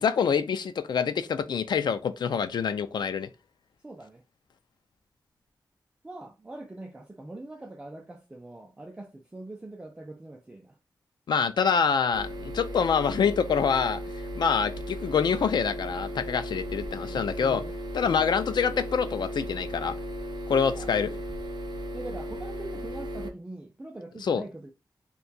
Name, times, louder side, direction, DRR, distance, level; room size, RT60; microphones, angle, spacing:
voice 1, 0.0-3.3 11.3-14.0 14.3-17.6 17.9-19.9 20.5-21.1 24.2-24.4, left 6 dB, 85° left, 0.4 m, -26 dB
voice 2, 3.8-4.2 6.0-10.8 17.1-17.8 18.0-18.3 20.7-21.2 21.9-24.7, right 2 dB, 15° right, 0.4 m, -43 dB
sound 1, 12.1-23.3, equal, 85° right, 0.7 m, -36 dB
2.7 x 2.3 x 3.9 m
wide cardioid pair, 165°, 7 cm